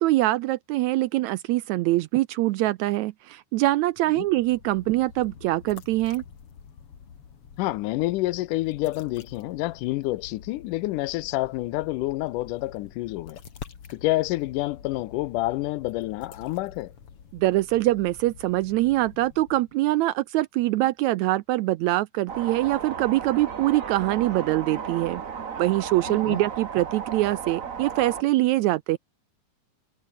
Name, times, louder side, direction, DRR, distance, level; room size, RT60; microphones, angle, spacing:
voice 1, 0.0-6.2 17.3-25.2 25.6-29.0, right 17 dB, 80° right, 1.7 m, -24 dB
sound 1, 3.9-19.8, left 7 dB, 45° left, 3.0 m, -47 dB
voice 2, 7.6-13.4 13.9-16.9 26.1-26.4, left 18 dB, 90° left, 2.2 m, -28 dB
sound 2, 22.3-28.2, right 6 dB, 50° right, 0.9 m, -35 dB
omnidirectional pair, 3.7 m